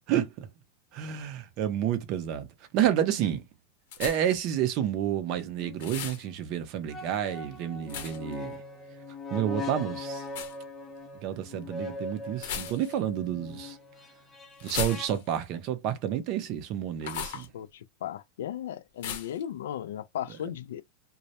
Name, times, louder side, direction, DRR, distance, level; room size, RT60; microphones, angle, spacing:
voice 1, 0.1-0.5 0.9-2.5 2.7-3.4 4.0-8.6 9.3-10.3 11.2-13.8 14.6-17.5, right 10 dB, 40° right, 0.5 m, -30 dB
sound 1, 3.9-4.4 5.8-6.2 7.9-8.3 10.3-10.6 12.4-13.1 14.6-15.4 17.0-17.5 19.0-19.4, left 6 dB, 65° left, 0.7 m, -36 dB
sound 2, 5.6-5.8 6.9-15.1, left 2 dB, 15° left, 0.5 m, -41 dB
voice 2, 17.2-20.8, left 10 dB, 90° left, 0.3 m, -37 dB
2.2 x 2.0 x 2.8 m
supercardioid pair, 160°, 0 cm